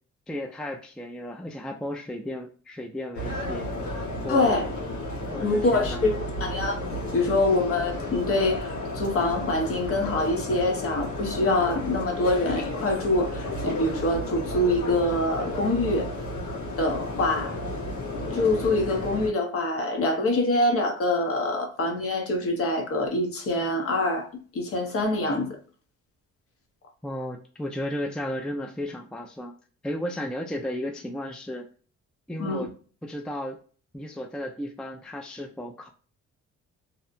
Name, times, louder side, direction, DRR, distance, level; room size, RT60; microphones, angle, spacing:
voice 1, 0.3-3.7 4.2-4.6 5.3-6.1 27.0-29.5 29.8-31.7 32.3-32.7 33.0-33.6 33.9-35.9, left 1 dB, 5° left, 0.3 m, -34 dB
sound 1, 3.1-19.3, left 1 dB, 70° left, 1.4 m, -32 dB
voice 2, 4.3-4.7 5.4-6.7 7.1-16.1 16.8-17.6 18.3-25.6 32.4-32.7, left 2 dB, 50° left, 0.9 m, -25 dB
2.8 x 2.1 x 2.5 m
cardioid pair, 90°, 30 cm